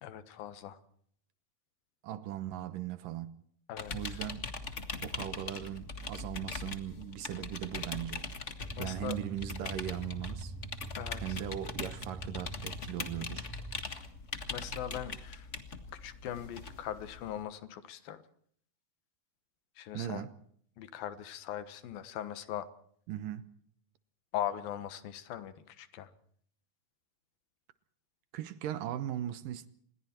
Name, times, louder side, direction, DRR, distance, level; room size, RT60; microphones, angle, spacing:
voice 1, 0.0-0.8 3.7-4.2 8.8-9.2 11.0-11.4 14.5-15.5 15.9-18.2 19.8-20.3 20.8-22.7 24.3-26.1, left 11 dB, 75° left, 3.1 m, -40 dB
voice 2, 2.0-3.4 3.9-4.5 5.0-8.3 8.8-10.5 11.2-13.5 19.9-20.3 23.1-23.5 28.3-29.7, right 12 dB, 70° right, 2.5 m, -39 dB
sound 1, 3.8-17.4, left 3 dB, 45° left, 0.9 m, -41 dB
sound 2, 8.6-14.2, right 2 dB, ahead, 1.9 m, -45 dB
27.0 x 21.5 x 4.4 m
omnidirectional pair, 4.2 m